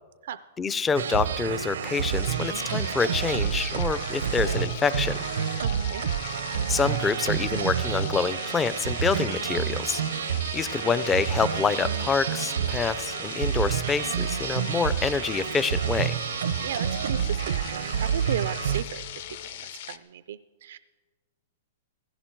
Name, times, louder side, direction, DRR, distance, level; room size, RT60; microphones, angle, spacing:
voice 1, 0.6-5.2 6.7-10.0 10.5-16.2, left 5 dB, 10° left, 16 dB, 0.4 m, -27 dB
sound 1, 0.9-18.8, right 8 dB, 85° right, 0.7 m, -29 dB
sound 2, 2.2-20.0, left 11 dB, 50° left, 0.7 m, -41 dB
sound 3, 3.5-19.5, left 7 dB, 80° left, 1.9 m, -47 dB
voice 2, 5.6-6.0 16.6-20.8, right 10 dB, 65° right, 15 dB, 0.4 m, -36 dB
16.5 x 15.5 x 4.5 m, 1.3 s
hypercardioid pair, 170°, 0 cm